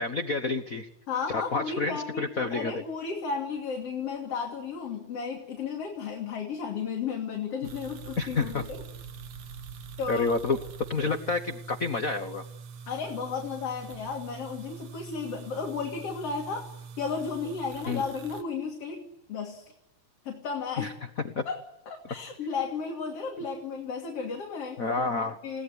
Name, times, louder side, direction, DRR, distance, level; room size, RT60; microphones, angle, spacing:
voice 1, 0.0-0.9 1.5-2.8 8.2-8.6 10.1-10.6 10.9-12.4 17.9-18.0 20.8-20.9 21.3-21.4 24.8-25.4, left 4 dB, 70° left, 8 dB, 0.7 m, -29 dB
voice 2, 1.1-8.9 10.0-10.3 12.9-16.7 17.0-19.7 20.3-21.0 21.5-21.6 21.9-24.9 25.4-25.6, left 5 dB, 50° left, 2 dB, 3.6 m, -34 dB
sound 1, 7.6-18.4, right 6 dB, 60° right, 2.4 m, -44 dB
29.5 x 18.0 x 9.9 m, 0.89 s
omnidirectional pair, 3.7 m